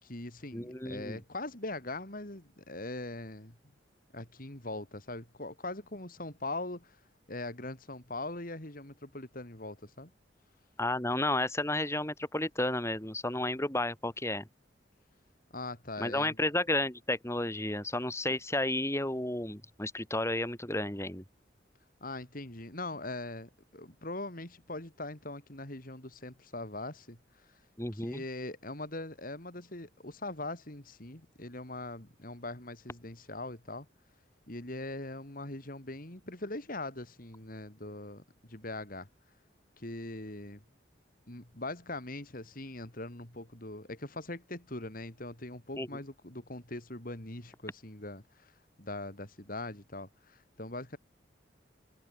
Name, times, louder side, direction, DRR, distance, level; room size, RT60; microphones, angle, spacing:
voice 1, 0.0-3.6 4.1-7.0 7.3-10.1 15.5-16.4 22.0-27.2 27.5-27.6 27.9-33.9 34.5-38.2 38.5-39.1 39.8-40.6 41.3-51.0, left 2 dB, 50° left, 3.7 m, -41 dB
voice 2, 0.5-1.2 10.8-14.5 16.0-21.2 27.8-28.2 45.8-45.9, left 1 dB, 15° left, 4.3 m, -32 dB
head